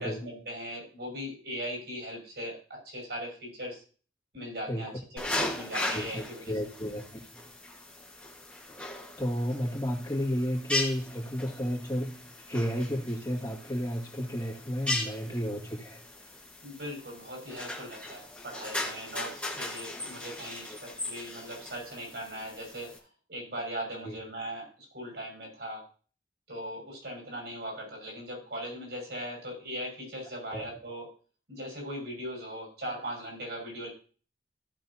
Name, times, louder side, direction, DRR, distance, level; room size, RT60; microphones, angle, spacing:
voice 1, 0.0-3.8 4.3-4.9 5.3-6.5 16.6-23.0 23.3-25.8 26.5-31.1 31.5-33.9, equal, 75° right, -1 dB, 5.7 m, -39 dB
voice 2, 4.7-5.0 5.9-7.2 9.2-16.0 24.0-24.2 30.5-30.7, equal, 20° left, -3 dB, 2.0 m, -32 dB
sound 1, 5.2-23.0, left 2 dB, 5° left, 1.7 m, -38 dB
15.5 x 6.0 x 2.8 m, 0.38 s
head